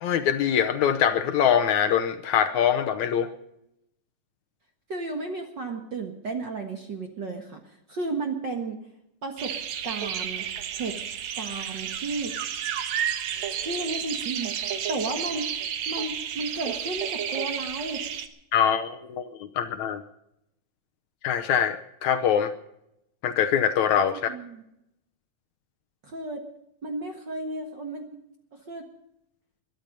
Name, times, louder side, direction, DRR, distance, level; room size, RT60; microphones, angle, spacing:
voice 1, 0.0-3.3 18.5-19.2 19.6-20.0 21.2-22.5 23.2-24.3, left 8 dB, 70° left, 9 dB, 2.0 m, -23 dB
voice 2, 4.9-7.6 7.9-8.8 9.2-9.5 9.8-10.5 10.8-11.0 11.4-12.3 13.5-15.5 15.9-18.0 24.1-24.6 26.0-26.4 26.8-28.1 28.7-28.9, right 3 dB, 45° right, 3 dB, 1.6 m, -33 dB
sound 1, 9.4-18.3, right 9 dB, 65° right, 2.2 m, -31 dB
22.0 x 12.0 x 5.4 m, 0.81 s
omnidirectional pair, 3.8 m